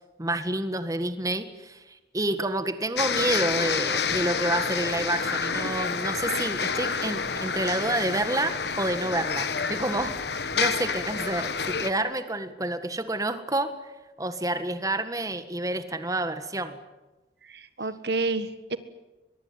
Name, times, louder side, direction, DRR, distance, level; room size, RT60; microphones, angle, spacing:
voice 1, 0.2-13.7 14.2-16.8, right 1 dB, 20° right, 10 dB, 1.7 m, -29 dB
sound 1, 3.0-11.9, left 5 dB, 65° left, 1.7 m, -29 dB
voice 2, 17.4-18.8, right 3 dB, 65° right, 12 dB, 1.6 m, -29 dB
23.0 x 22.5 x 9.7 m, 1.1 s
head